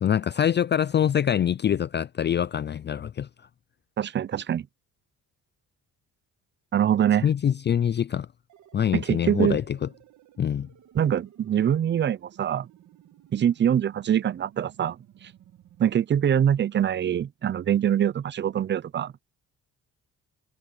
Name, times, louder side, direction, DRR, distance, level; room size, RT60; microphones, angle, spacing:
voice 1, 0.0-3.3 7.2-8.3 8.7-9.9 10.4-10.7, left 9 dB, 35° left, 0.5 m, -24 dB
voice 2, 4.0-4.7 6.7-7.3 8.9-9.6 10.9-12.7 13.3-15.3 15.8-19.2, right 9 dB, 40° right, 0.5 m, -24 dB
sound 1, 8.5-15.9, right 11 dB, 70° right, 1.8 m, -55 dB
cardioid pair, 90°, 30 cm